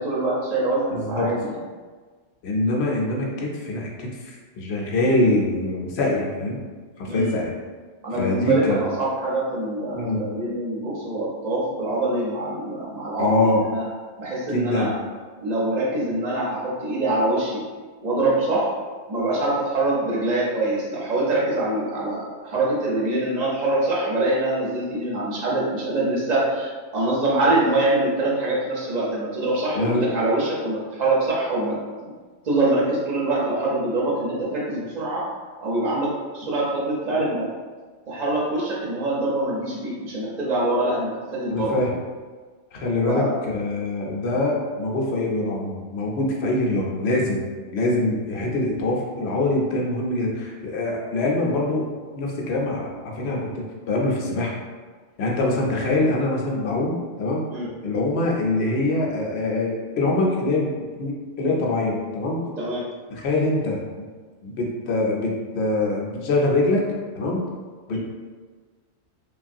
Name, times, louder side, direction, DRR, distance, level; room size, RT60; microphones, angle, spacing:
voice 1, 0.0-1.5 7.1-7.3 8.0-13.8 14.2-14.9 15.4-17.6 18.0-18.7 19.1-32.1 32.4-35.3 35.6-37.5 38.1-41.8 43.1-43.3 57.5-57.7 62.6-62.9 67.9-68.0, right 2 dB, 45° right, -5 dB, 0.7 m, -24 dB
voice 2, 0.9-1.3 2.4-6.6 7.0-7.5 8.2-8.8 9.9-10.2 13.2-13.6 14.5-14.9 29.8-30.1 41.5-41.9 42.7-47.5 47.7-51.9 52.1-54.5 55.2-57.4 57.8-62.4 63.1-64.1 64.4-66.8 67.1-67.4 67.9-68.0, left 2 dB, 70° left, -2 dB, 0.8 m, -24 dB
3.2 x 2.3 x 2.5 m, 1.5 s
omnidirectional pair, 1.2 m